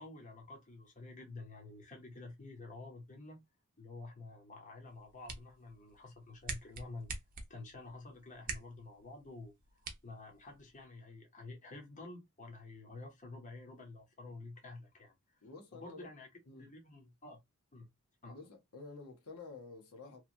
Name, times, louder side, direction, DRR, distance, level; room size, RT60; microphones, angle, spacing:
voice 1, 0.0-3.4 3.8-7.1 7.5-15.4 15.7-16.3 16.6-17.4 17.7-17.9 18.2-18.4, left 2 dB, 35° left, 0.9 m, -50 dB
sound 1, 4.8-10.9, right 4 dB, 40° right, 0.6 m, -48 dB
voice 2, 15.4-16.1 16.5-16.7 18.2-20.2, left 3 dB, 75° left, 0.9 m, -50 dB
2.9 x 2.3 x 2.5 m
head